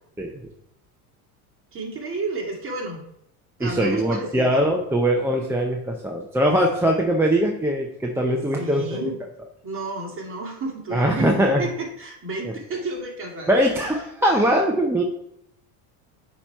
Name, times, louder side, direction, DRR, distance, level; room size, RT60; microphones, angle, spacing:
voice 1, 0.2-0.5 3.6-9.1 10.9-11.7 13.5-15.0, right 1 dB, 5° right, 0 dB, 0.5 m, -21 dB
voice 2, 1.7-3.1 3.6-4.5 8.6-9.2 9.6-13.5 14.2-14.3, right 2 dB, 30° right, -1 dB, 2.0 m, -31 dB
8.4 x 3.0 x 4.5 m, 0.75 s
supercardioid pair, 115°, 44 cm